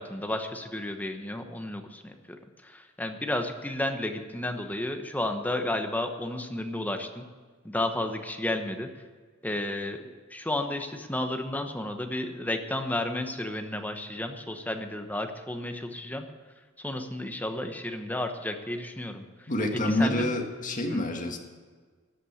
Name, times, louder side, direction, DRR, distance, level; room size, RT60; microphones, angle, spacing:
voice 1, 0.0-2.4 2.6-7.2 7.6-8.9 9.4-16.3 16.8-20.3 20.9-21.0, left 1 dB, 10° left, 6 dB, 1.0 m, -32 dB
voice 2, 19.5-21.4, left 1 dB, 40° left, 3 dB, 1.9 m, -27 dB
13.0 x 8.7 x 9.1 m, 1.5 s
head